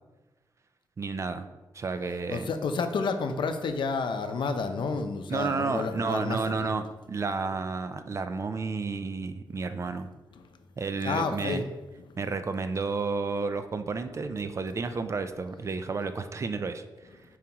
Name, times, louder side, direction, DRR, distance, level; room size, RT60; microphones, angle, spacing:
voice 1, 1.0-1.5 1.7-2.5 5.3-10.1 10.8-11.6 12.2-16.8, right 4 dB, 35° right, 9 dB, 0.4 m, -31 dB
voice 2, 2.3-6.7 9.5-9.6 11.0-11.6, left 4 dB, 80° left, 7 dB, 0.6 m, -30 dB
7.1 x 4.7 x 3.0 m, 1.1 s
wide cardioid pair, 155°, 8 cm